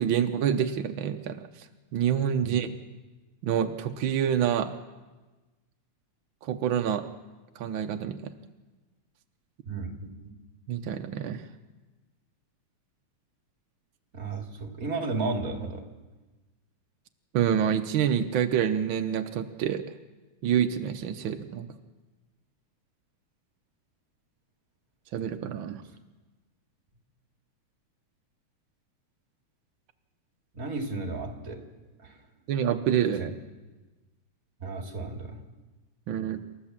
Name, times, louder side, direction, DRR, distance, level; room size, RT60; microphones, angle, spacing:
voice 1, 0.0-1.4 1.9-2.7 3.4-4.7 6.4-7.0 7.6-8.3 10.7-11.4 17.3-19.8 20.4-21.7 25.1-25.8 32.5-33.3 36.1-36.4, right 9 dB, 85° right, 6 dB, 1.1 m, -27 dB
voice 2, 9.7-10.3 14.1-15.8 30.5-31.6 32.0-32.2 33.2-33.3 34.6-35.4, right 3 dB, 30° right, 2 dB, 2.5 m, -33 dB
27.5 x 13.5 x 7.4 m, 1.2 s
omnidirectional pair, 3.4 m